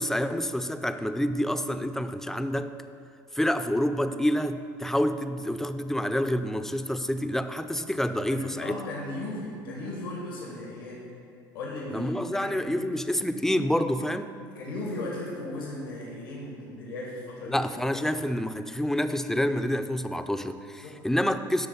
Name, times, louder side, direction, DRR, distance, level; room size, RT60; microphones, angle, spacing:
voice 1, 0.0-2.7 3.3-8.8 11.9-14.3 17.5-21.7, equal, 5° left, 9 dB, 0.5 m, -28 dB
voice 2, 8.3-11.0 11.5-13.3 14.4-17.6 20.8-21.0, left 2 dB, 90° left, -3 dB, 1.7 m, -37 dB
12.0 x 4.0 x 6.7 m, 2.3 s
hypercardioid pair, 75°, 11 cm